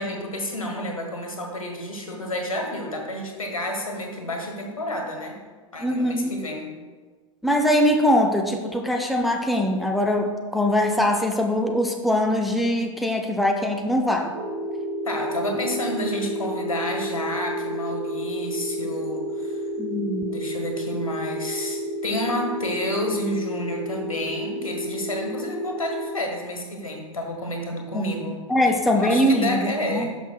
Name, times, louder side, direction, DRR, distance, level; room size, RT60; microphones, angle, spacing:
voice 1, 0.0-5.3 5.7-6.7 15.0-19.6 20.3-28.4 28.9-30.1, left 1 dB, 80° left, 2 dB, 1.5 m, -30 dB
voice 2, 5.8-6.3 7.4-14.4 19.8-20.4 27.9-30.1, left 1 dB, ahead, 2 dB, 0.4 m, -22 dB
sound 1, 14.3-26.1, right 1 dB, 40° right, 1.3 m, -30 dB
11.5 x 5.7 x 2.3 m, 1.4 s
figure-of-eight pair, 100°, 17 cm